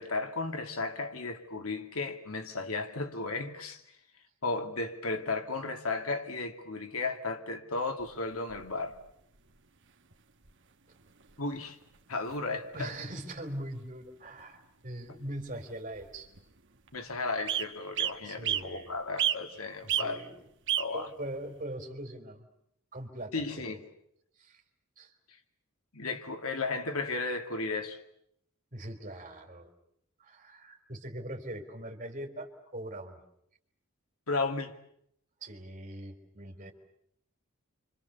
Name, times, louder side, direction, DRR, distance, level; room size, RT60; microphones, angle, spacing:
voice 1, 0.0-3.8 4.4-8.9 11.4-11.8 12.1-12.9 16.9-20.2 20.8-21.1 23.3-23.8 25.9-28.0 34.3-34.7, left 3 dB, 85° left, 2.5 m, -34 dB
sound 1, 8.0-9.0 10.1-10.2 10.4-10.5 11.2-11.5 11.8-11.9 12.2-12.4 12.8-13.0 13.9-14.0 14.4-14.5 15.6-15.7 15.9-16.4 16.9-17.0 17.5-17.7 18.0-18.7 19.2-19.6 19.9-20.1 20.7-20.9 21.6-21.7, right 11 dB, 60° right, 1.6 m, -30 dB
voice 2, 12.7-16.3 18.2-18.9 19.8-20.4 20.9-22.5 22.9-23.3 23.6-23.8 24.4-24.6 25.0-25.1 28.7-29.7 30.2-33.2 35.4-36.7, right 1 dB, 40° right, 4.1 m, -41 dB
29.0 x 25.5 x 7.1 m
head